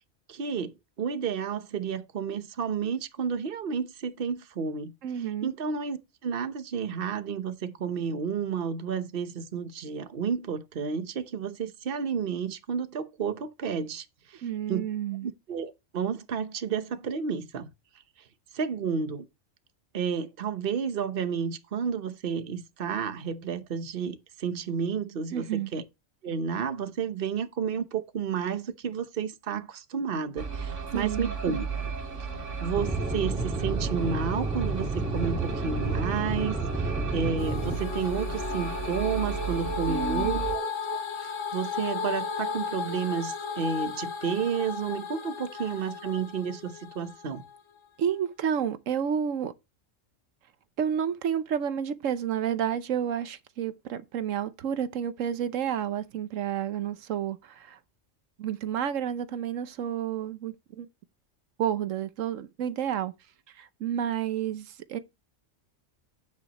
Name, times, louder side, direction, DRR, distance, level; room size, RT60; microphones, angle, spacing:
voice 1, 0.3-14.4 14.7-14.8 15.2-17.7 18.5-19.3 19.9-25.8 26.2-31.6 32.6-47.4, right 6 dB, 50° right, 1.1 m, -31 dB
voice 2, 5.0-5.5 14.4-15.3 25.3-25.7 30.9-31.3 39.9-40.5 48.0-49.5 50.8-57.8 58.4-60.9 61.6-63.1 63.5-65.0, right 9 dB, 85° right, 1.2 m, -30 dB
sound 1, 30.4-40.6, right 5 dB, 70° right, 2.0 m, -34 dB
Aircraft / Engine, 32.8-37.8, right 2 dB, 5° right, 1.9 m, -31 dB
sound 2, 37.4-47.6, left 6 dB, 80° left, 2.0 m, -35 dB
9.3 x 8.0 x 3.0 m
omnidirectional pair, 1.3 m